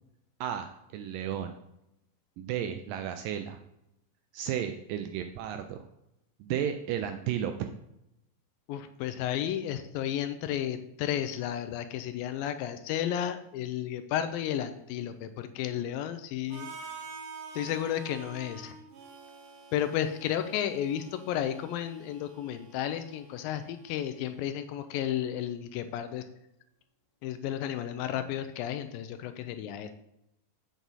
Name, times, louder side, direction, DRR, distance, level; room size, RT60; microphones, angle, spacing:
voice 1, 0.4-1.6 2.4-3.6 4.3-5.9 6.4-7.7, right 9 dB, 85° right, 7 dB, 2.0 m, -33 dB
voice 2, 8.7-16.7 17.5-18.8 19.7-26.3 27.2-29.9, left 10 dB, 80° left, 9 dB, 2.2 m, -33 dB
Harmonica, 16.5-24.4, right 4 dB, 65° right, 2.6 m, -48 dB
8.0 x 6.1 x 4.0 m, 0.85 s
omnidirectional pair, 4.3 m